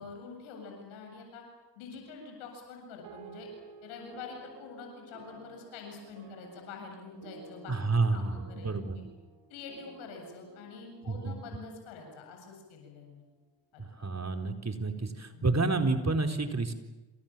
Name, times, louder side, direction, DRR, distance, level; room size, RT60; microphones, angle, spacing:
voice 1, 0.0-1.4 1.8-3.5 3.8-7.7 8.1-9.0 9.5-13.2 13.7-13.8 15.3-15.4, left 4 dB, 90° left, 2 dB, 7.8 m, -46 dB
sound 1, 3.0-12.8, right 5 dB, 90° right, 4.2 m, -54 dB
voice 2, 7.7-9.0 11.1-11.3 13.8-16.7, right 3 dB, 35° right, 5 dB, 4.2 m, -29 dB
28.0 x 28.0 x 7.5 m, 1.1 s
hypercardioid pair, 45°, 47 cm